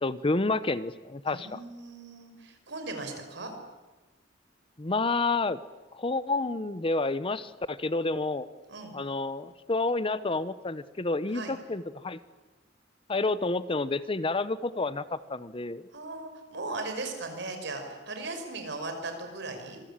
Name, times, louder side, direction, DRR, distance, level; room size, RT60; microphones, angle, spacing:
voice 1, 0.0-1.6 4.8-5.6 5.9-8.5 8.9-12.2 13.1-15.9, left 3 dB, 30° left, 15 dB, 0.8 m, -29 dB
voice 2, 1.3-3.5 8.7-9.0 11.3-11.5 15.9-19.8, right 2 dB, 65° right, 5 dB, 5.7 m, -38 dB
26.0 x 22.5 x 8.9 m, 1.2 s
head